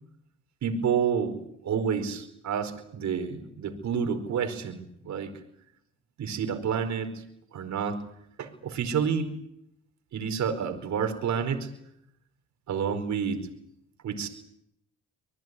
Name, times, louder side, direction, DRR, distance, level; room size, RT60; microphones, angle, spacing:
voice 1, 0.6-1.4 1.6-5.3 6.2-7.1 7.5-8.0 8.4-9.3 10.1-11.7 12.7-13.4 14.0-14.3, right 7 dB, 65° right, 6 dB, 4.8 m, -29 dB
25.5 x 19.5 x 9.7 m, 0.76 s
cardioid pair, 90°, 30 cm